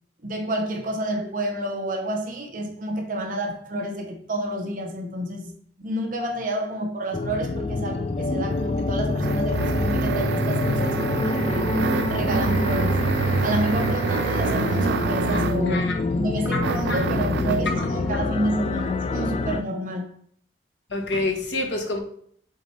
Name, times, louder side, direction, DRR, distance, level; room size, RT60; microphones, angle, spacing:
voice 1, 0.2-11.7 12.1-13.1 13.4-20.2, right 1 dB, 45° right, 0.9 m, -29 dB
sound 1, 7.1-19.6, left 3 dB, 35° left, 0.3 m, -26 dB
sound 2, 8.5-15.7 16.6-17.7, right 5 dB, 70° right, 0.3 m, -26 dB
voice 2, 16.5-17.0 17.7-17.8 20.9-22.0, left 2 dB, 85° left, 1.4 m, -28 dB
7.1 x 4.2 x 3.4 m
head